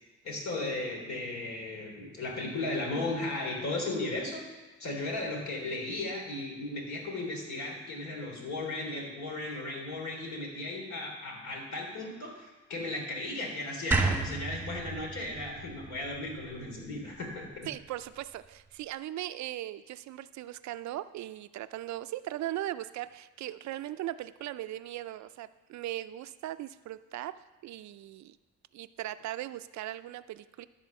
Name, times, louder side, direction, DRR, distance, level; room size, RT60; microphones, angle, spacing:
voice 1, 0.2-4.4 4.8-17.7, left 2 dB, 65° left, -1 dB, 3.4 m, -36 dB
sound 1, 13.9-17.1, right 3 dB, 5° right, 1.2 m, -32 dB
voice 2, 17.7-28.4 28.7-30.7, right 14 dB, 65° right, 14 dB, 0.5 m, -39 dB
13.0 x 4.4 x 6.9 m, 1.2 s
cardioid pair, 90°, 30 cm